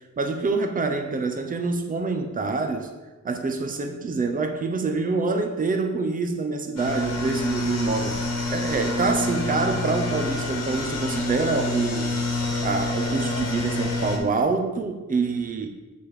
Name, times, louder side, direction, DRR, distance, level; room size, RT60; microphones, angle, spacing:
voice 1, 0.2-2.9 3.2-12.2 12.6-15.7, right 4 dB, 30° right, 5 dB, 0.8 m, -26 dB
sound 1, 6.8-14.2, left 2 dB, 60° left, 1.8 m, -27 dB
7.5 x 6.9 x 4.9 m, 1.2 s
wide cardioid pair, 155°, 29 cm